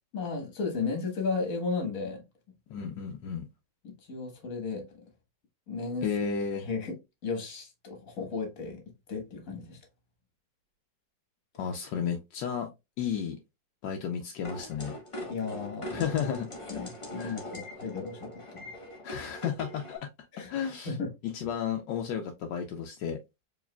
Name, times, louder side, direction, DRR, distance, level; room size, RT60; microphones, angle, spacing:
voice 1, 0.1-2.2 3.8-4.9 5.7-6.1 6.6-7.0 7.2-8.8 9.1-9.8 15.3-16.1 16.7-18.7 20.3-20.5 20.8-21.1, left 4 dB, 50° left, 1.7 m, -34 dB
voice 2, 2.7-3.5 6.0-6.7 11.6-12.7 13.0-13.4 13.8-15.0 15.9-16.5 17.2-17.4 19.0-20.1 20.5-20.9 21.2-23.2, left 7 dB, 80° left, 1.3 m, -33 dB
sound 1, 14.4-20.0, left 1 dB, 20° left, 0.9 m, -41 dB
4.7 x 3.7 x 2.2 m
omnidirectional pair, 1.9 m